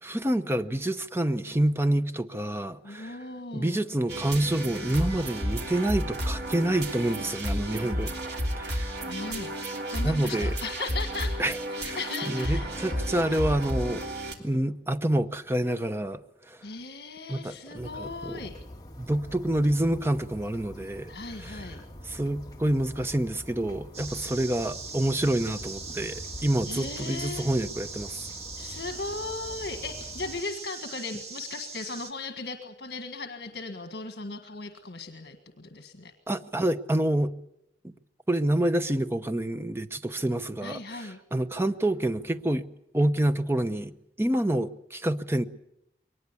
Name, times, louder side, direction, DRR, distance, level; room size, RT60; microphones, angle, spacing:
voice 1, 0.0-3.2 3.5-8.1 8.6-9.1 10.0-10.6 11.4-11.6 11.8-12.0 12.3-14.0 14.4-16.6 17.3-18.4 19.0-21.7 22.0-28.2 36.3-37.3 37.8-37.9 38.3-42.6 42.9-43.9 44.2-45.5, right 1 dB, 15° right, 10 dB, 0.8 m, -27 dB
voice 2, 2.8-3.8 9.1-9.5 9.9-11.4 11.7-12.7 16.6-18.5 21.1-21.8 26.7-27.5 28.6-36.1 40.6-41.2, left 3 dB, 70° left, 6 dB, 1.7 m, -37 dB
sound 1, 4.1-14.3, equal, 70° right, 3.1 m, -32 dB
sound 2, 17.7-30.4, left 1 dB, 20° left, 1.8 m, -45 dB
sound 3, 23.9-32.1, right 4 dB, 35° right, 2.0 m, -40 dB
23.0 x 19.0 x 8.4 m, 0.82 s
head